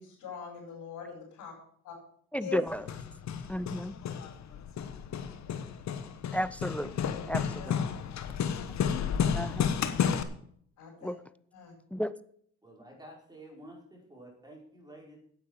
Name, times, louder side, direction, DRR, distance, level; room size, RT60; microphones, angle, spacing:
voice 1, 0.0-1.5 1.8-2.0 2.4-2.6 6.9-8.0 10.8-11.1 11.5-11.7, left 7 dB, 85° left, -6 dB, 5.3 m, -43 dB
voice 2, 2.3-2.8 3.5-4.0 6.3-7.8 9.3-9.7 11.0-11.2 11.9-12.1, equal, 5° left, 16 dB, 0.5 m, -33 dB
Hammer, 2.7-10.2, left 7 dB, 65° left, 1.2 m, -32 dB
voice 3, 12.6-15.2, right 1 dB, 15° right, -1 dB, 5.3 m, -50 dB
9.7 x 8.7 x 7.3 m, 0.62 s
cardioid pair, 90°, 30 cm